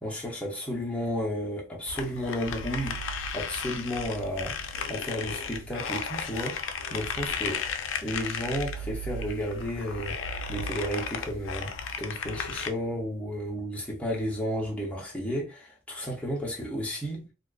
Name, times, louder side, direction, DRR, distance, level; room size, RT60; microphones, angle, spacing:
voice 1, 0.0-3.0 3.3-6.5 6.9-7.6 8.0-11.7 12.0-17.2, equal, 5° left, 0.7 m, -32 dB
sound 1, 1.9-12.7, left 4 dB, 70° left, 0.4 m, -34 dB
2.4 x 2.4 x 2.3 m
head